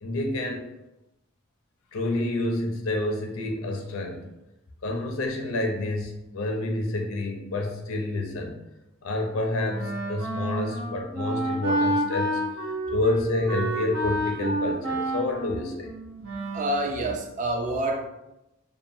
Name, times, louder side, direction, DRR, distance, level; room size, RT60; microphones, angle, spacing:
voice 1, 0.0-0.6 1.9-4.3 4.8-8.6 9.0-12.4 12.9-15.9, left 2 dB, 80° left, 2 dB, 0.5 m, -28 dB
Wind instrument woodwind instrument, 9.7-16.8, right 1 dB, 85° right, 0.7 m, -29 dB
voice 2, 16.5-18.1, right 1 dB, 40° right, 3 dB, 0.4 m, -27 dB
2.8 x 2.2 x 2.5 m, 0.91 s
head